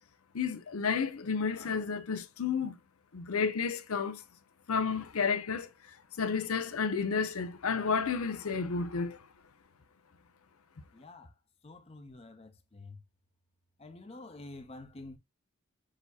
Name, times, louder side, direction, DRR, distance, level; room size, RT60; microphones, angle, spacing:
voice 1, 0.3-2.8 3.1-4.2 4.7-9.2, left 5 dB, 85° left, 0.6 m, -31 dB
voice 2, 10.9-11.3 11.6-13.0 13.8-15.2, left 2 dB, 30° left, 0.6 m, -48 dB
6.5 x 2.7 x 2.2 m
head